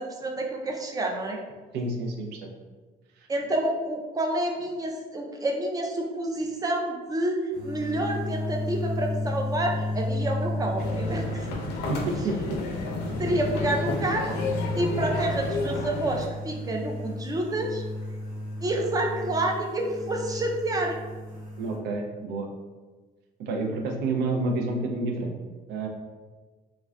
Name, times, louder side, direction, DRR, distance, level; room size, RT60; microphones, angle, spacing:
voice 1, 0.0-1.4 3.3-11.5 13.2-14.4 14.7-17.8 18.6-21.0, right 1 dB, 20° right, 1 dB, 0.4 m, -28 dB
voice 2, 1.7-2.5 3.2-3.3 11.9-12.6 21.6-22.5 23.4-25.4 25.7-25.9, right 2 dB, 80° right, 2 dB, 0.5 m, -29 dB
sound 1, 7.5-21.8, left 1 dB, 55° right, 1.0 m, -33 dB
sound 2, 10.8-16.3, left 3 dB, 80° left, 0.5 m, -32 dB
2.4 x 2.2 x 3.3 m, 1.3 s
cardioid pair, 110°, 17 cm